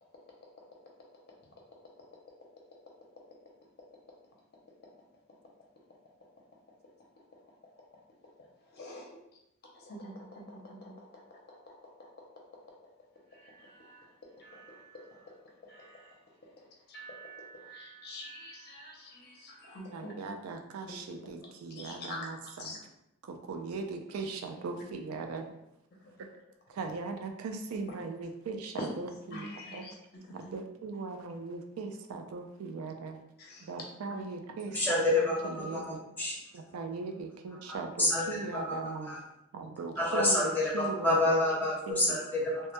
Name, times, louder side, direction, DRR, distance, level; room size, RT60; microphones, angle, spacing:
voice 1, 8.7-9.1 9.8-11.7 13.4-14.0 14.4-15.2 15.6-16.1 16.9-20.1 21.8-22.3 22.6-22.8 29.3-29.9 33.4-33.7 34.1-34.2, left 1 dB, 45° left, -1 dB, 0.5 m, -46 dB
voice 2, 19.9-22.8 23.2-25.5 26.2-26.3 26.7-29.9 30.3-33.2 33.6-36.0 36.5-39.1 39.5-41.4 41.9-42.2, right 4 dB, 85° right, 5 dB, 0.3 m, -39 dB
voice 3, 34.7-36.3 37.7-38.3 38.5-39.2 40.0-42.6, left 1 dB, 10° left, -5 dB, 0.7 m, -28 dB
2.2 x 2.1 x 2.8 m, 0.84 s
head